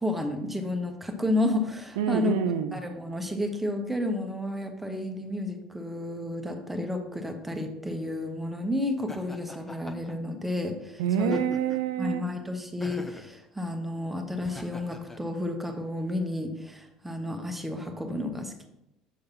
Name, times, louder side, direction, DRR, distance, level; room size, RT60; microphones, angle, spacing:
voice 1, 0.0-2.3 2.7-11.4 12.0-18.6, left 1 dB, 5° right, 4 dB, 1.1 m, -31 dB
voice 2, 2.0-2.8 11.0-12.3, right 9 dB, 65° right, 9 dB, 0.4 m, -27 dB
Laughter, 9.1-10.1 11.2-11.9 12.8-13.3 14.4-15.2, left 1 dB, 10° left, 0.7 m, -41 dB
7.2 x 6.5 x 2.9 m, 0.89 s
figure-of-eight pair, 60°, 2 cm